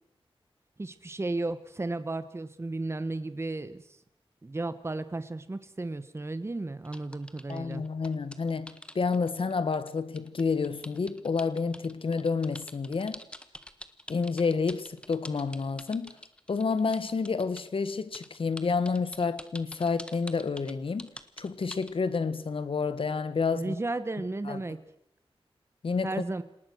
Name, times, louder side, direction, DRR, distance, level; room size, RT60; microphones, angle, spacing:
voice 1, 0.8-4.0 4.4-7.8 23.5-24.8 26.0-26.4, right 2 dB, 25° right, 1.2 m, -34 dB
sound 1, 6.9-17.7 18.1-22.0, left 1 dB, 10° left, 1.5 m, -46 dB
voice 2, 7.5-13.2 14.1-16.2 16.5-21.1 21.4-23.8 24.4-24.6 25.8-26.2, left 4 dB, 65° left, 1.5 m, -29 dB
28.0 x 18.5 x 6.5 m
wide cardioid pair, 100°, 10 cm